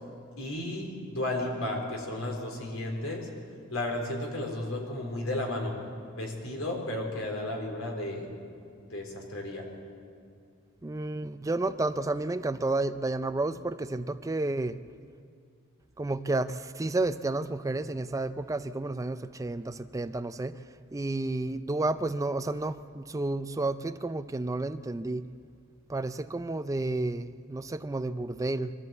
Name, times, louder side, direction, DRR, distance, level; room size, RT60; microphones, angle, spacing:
voice 1, 0.4-3.3 3.7-5.8 6.1-8.3 8.8-9.7, left 1 dB, 85° left, 1 dB, 4.0 m, -33 dB
voice 2, 10.8-14.8 16.0-20.6 20.9-25.2 25.9-28.7, right 2 dB, 15° right, 12 dB, 0.4 m, -31 dB
24.0 x 14.0 x 8.3 m, 2.3 s
head